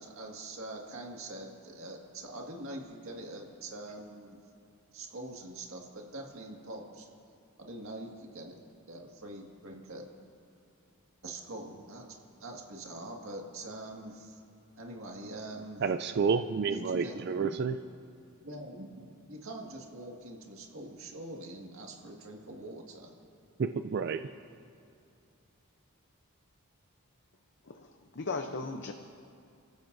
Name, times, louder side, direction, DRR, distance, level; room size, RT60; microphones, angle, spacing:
voice 1, 0.0-4.4 4.9-7.1 7.6-8.6 8.9-10.0 11.2-12.0 12.4-14.4 14.8-15.8 16.7-17.6 18.4-23.1, right 1 dB, 65° right, 0 dB, 1.9 m, -44 dB
voice 2, 15.8-17.8 23.6-24.3, right 5 dB, 50° right, 9 dB, 0.3 m, -30 dB
voice 3, 27.7-28.9, left 3 dB, 55° left, 5 dB, 0.7 m, -37 dB
29.5 x 15.0 x 2.7 m, 2.5 s
head